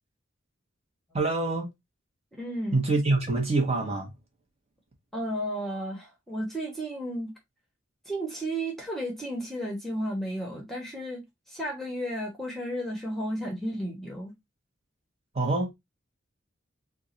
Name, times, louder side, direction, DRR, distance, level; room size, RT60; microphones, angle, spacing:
voice 1, 1.1-1.7 2.7-4.1 15.3-15.7, right 2 dB, 30° right, 1.3 m, -25 dB
voice 2, 2.3-2.8 5.1-7.3 8.0-14.3, equal, ahead, 1.1 m, -33 dB
3.6 x 2.5 x 3.9 m
head